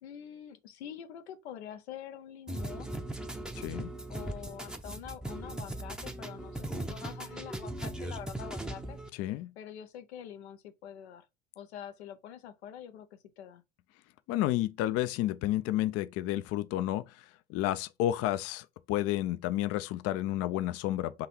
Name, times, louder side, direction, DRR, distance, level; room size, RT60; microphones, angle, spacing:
voice 1, 0.0-3.0 4.1-9.0 9.6-11.2 11.6-13.6, left 9 dB, 90° left, 0.7 m, -46 dB
sound 1, 2.5-9.1, right 1 dB, ahead, 0.6 m, -39 dB
voice 2, 3.6-3.9 9.1-9.5 14.3-21.3, left 14 dB, 50° left, 0.4 m, -31 dB
3.9 x 2.7 x 4.2 m
supercardioid pair, 90°, 32 cm